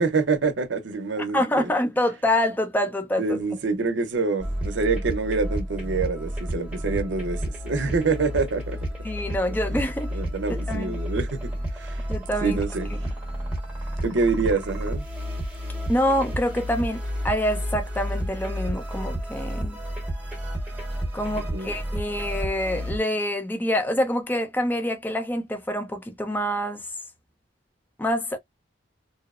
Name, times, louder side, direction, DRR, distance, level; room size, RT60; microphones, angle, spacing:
voice 1, 0.0-1.7 3.2-8.8 9.7-9.8 10.1-12.1 12.4-13.1 14.0-15.0 21.4-21.8, right 4 dB, 75° right, 0.6 m, -26 dB
voice 2, 1.3-3.4 9.0-10.1 10.5-11.0 12.1-12.6 15.9-19.8 21.1-26.8 28.0-28.4, left 1 dB, 10° left, 0.4 m, -26 dB
sound 1, 4.4-23.0, equal, 5° right, 1.0 m, -31 dB
2.7 x 2.0 x 2.3 m
head